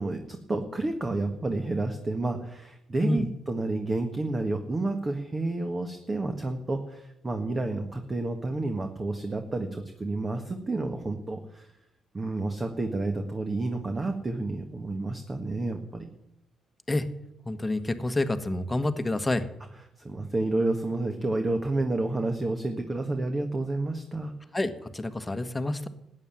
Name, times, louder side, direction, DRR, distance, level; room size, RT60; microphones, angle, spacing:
voice 1, 0.0-11.7 12.1-16.1 20.0-24.3, right 2 dB, 25° right, 5 dB, 1.6 m, -30 dB
voice 2, 17.4-19.5 24.5-25.9, left 2 dB, 15° left, 10 dB, 1.4 m, -28 dB
13.5 x 9.0 x 9.7 m, 0.88 s
cardioid pair, 90°, 0 cm